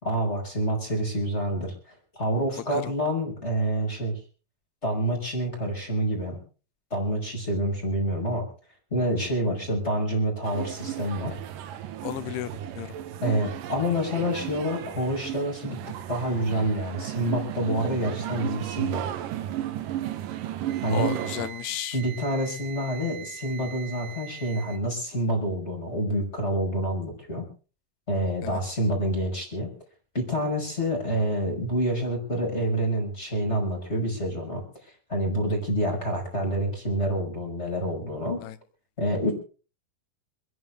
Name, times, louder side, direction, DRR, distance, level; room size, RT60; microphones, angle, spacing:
voice 1, 0.0-1.7 2.2-4.2 4.8-6.4 6.9-8.5 8.9-11.4 13.2-15.8 16.1-19.0 20.8-21.1 21.9-27.5 28.1-29.7 30.1-34.6 35.1-38.4 39.0-39.3, equal, 15° left, 2 dB, 5.7 m, -27 dB
sound 1, 10.4-21.5, right 12 dB, 70° right, 2.5 m, -34 dB
voice 2, 12.0-12.5 12.8-12.9 20.9-22.0 28.4-28.6 38.4-38.6, left 14 dB, 80° left, 14 dB, 3.0 m, -33 dB
Wind instrument woodwind instrument, 20.6-24.8, right 9 dB, 85° right, 3.4 m, -43 dB
27.5 x 11.0 x 3.4 m, 0.37 s
omnidirectional pair, 4.7 m